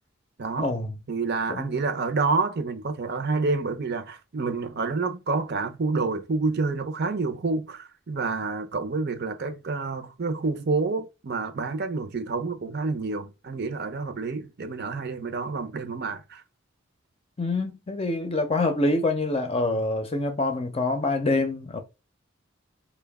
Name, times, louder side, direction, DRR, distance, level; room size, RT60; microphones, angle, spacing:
voice 1, 0.6-1.0 1.5-1.8 17.4-21.8, left 2 dB, 30° left, 0.6 m, -26 dB
voice 2, 1.1-16.4, right 4 dB, 55° right, 0.6 m, -28 dB
4.5 x 2.2 x 3.4 m
head